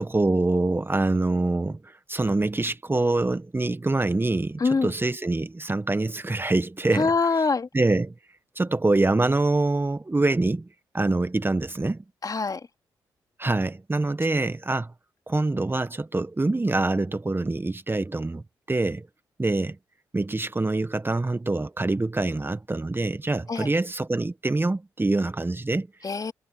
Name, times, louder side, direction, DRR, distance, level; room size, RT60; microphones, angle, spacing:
voice 1, 0.0-7.1 7.7-8.1 8.5-10.7 10.9-12.0 13.4-14.9 15.3-19.1 19.4-19.8 20.1-25.9, right 2 dB, 25° right, 1.6 m, -25 dB
voice 2, 4.6-4.9 6.9-7.7 12.2-12.6 23.5-23.7 26.0-26.3, left 4 dB, 40° left, 3.2 m, -24 dB
hypercardioid pair, 45°, 9 cm